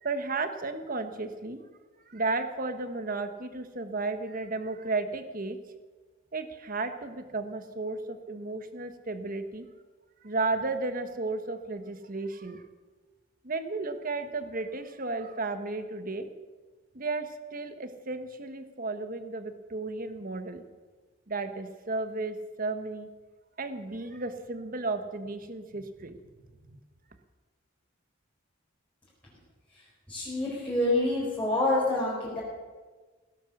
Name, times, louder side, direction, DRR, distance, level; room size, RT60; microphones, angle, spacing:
voice 1, 0.0-1.6 2.1-5.6 6.3-9.7 10.2-12.6 13.4-16.3 16.9-20.6 21.3-23.1 23.6-26.2 26.7-26.8, right 3 dB, 45° right, 9 dB, 1.3 m, -33 dB
voice 2, 30.1-32.4, left 2 dB, 5° left, -8 dB, 4.5 m, -27 dB
17.0 x 12.0 x 6.6 m, 1.3 s
head